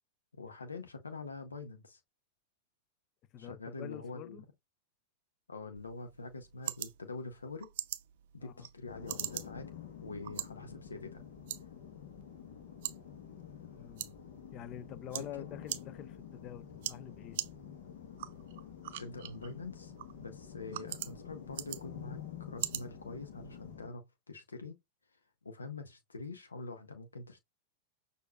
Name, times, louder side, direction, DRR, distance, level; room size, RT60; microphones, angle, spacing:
voice 1, 0.4-2.0 3.4-4.4 5.5-7.7 8.3-9.7 10.0-11.2 15.1-15.5 19.0-24.8 25.1-27.4, left 3 dB, 90° left, 0.6 m, -45 dB
voice 2, 3.3-4.4 8.4-8.7 13.7-14.1 14.5-17.4, left 11 dB, 40° left, 0.5 m, -47 dB
sound 1, 5.8-23.8, right 13 dB, 60° right, 0.4 m, -45 dB
sound 2, 8.9-23.9, left 9 dB, 65° left, 1.0 m, -49 dB
6.2 x 2.5 x 2.3 m
hypercardioid pair, 95°, 0 cm